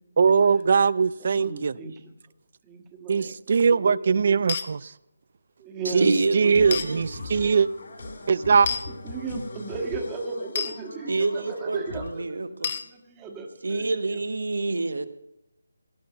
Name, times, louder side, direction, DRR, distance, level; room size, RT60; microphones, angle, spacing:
voice 1, 0.2-1.8 3.1-4.9 5.9-7.7 8.3-8.7, right 5 dB, 45° right, 21 dB, 0.3 m, -21 dB
voice 2, 1.3-1.9 2.7-4.0 5.6-6.1 9.0-12.2 12.9-13.9, right 4 dB, 15° right, 3 dB, 1.5 m, -35 dB
sound 1, 4.5-4.7 6.7-6.9 8.7-8.8 10.6-10.7 12.6-12.9, left 6 dB, 40° left, 0.9 m, -28 dB
voice 3, 5.8-7.0 11.1-12.7 13.6-15.1, right 3 dB, 75° right, 11 dB, 1.2 m, -27 dB
sound 2, 6.4-12.1, left 2 dB, 65° left, 3.2 m, -40 dB
17.0 x 6.0 x 7.8 m, 0.89 s
figure-of-eight pair, 165°, 0 cm